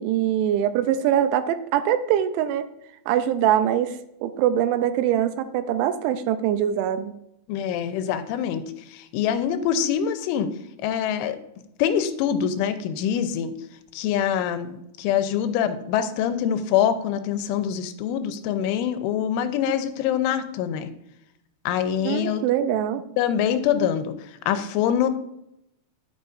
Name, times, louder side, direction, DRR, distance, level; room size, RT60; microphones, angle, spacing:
voice 1, 0.0-2.7 3.1-7.1 22.0-23.0, right 10 dB, 85° right, 11 dB, 2.8 m, -23 dB
voice 2, 7.5-8.6 8.9-10.5 10.8-11.4 11.8-13.5 13.9-20.9 21.7-22.4 23.2-24.1 24.5-25.1, left 9 dB, 90° left, 10 dB, 3.1 m, -24 dB
10.5 x 8.3 x 2.5 m, 0.81 s
omnidirectional pair, 5.5 m